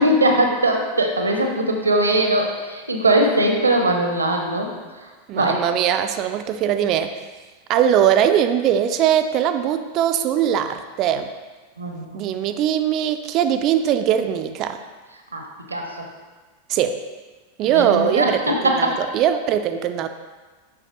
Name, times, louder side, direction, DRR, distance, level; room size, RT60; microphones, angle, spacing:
voice 1, 0.0-4.7 5.3-5.6 11.8-12.3 15.3-16.1 17.6-19.0, right 1 dB, 80° right, 3 dB, 0.7 m, -20 dB
voice 2, 5.3-7.2 7.7-11.3 12.1-14.8 16.7-17.0 17.6-20.1, right 9 dB, 35° right, 8 dB, 0.3 m, -21 dB
6.9 x 5.6 x 3.0 m, 1.4 s
figure-of-eight pair, 90°, 0 cm